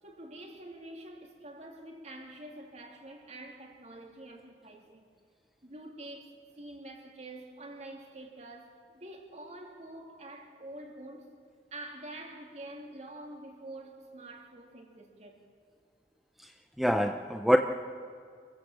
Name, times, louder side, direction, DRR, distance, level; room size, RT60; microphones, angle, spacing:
voice 1, 0.0-5.1 5.6-11.3 11.7-15.4, right 1 dB, 40° right, 2 dB, 2.8 m, -46 dB
voice 2, 16.8-17.6, equal, ahead, 5 dB, 0.6 m, -25 dB
26.5 x 15.0 x 7.4 m, 2.1 s
head